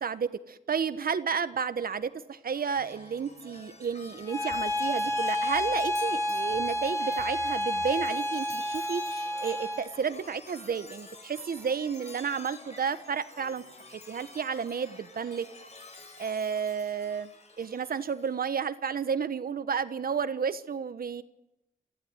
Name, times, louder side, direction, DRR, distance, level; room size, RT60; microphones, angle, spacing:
voice 1, 0.0-13.6 13.9-15.5 16.2-17.3 17.6-21.2, right 6 dB, 70° right, 13 dB, 1.3 m, -32 dB
Chime, 2.5-18.3, left 3 dB, 45° left, 5.2 m, -48 dB
Bowed string instrument, 4.3-9.9, equal, 15° left, 4.1 m, -30 dB
28.0 x 15.5 x 9.5 m, 0.92 s
wide cardioid pair, 120°, 16 cm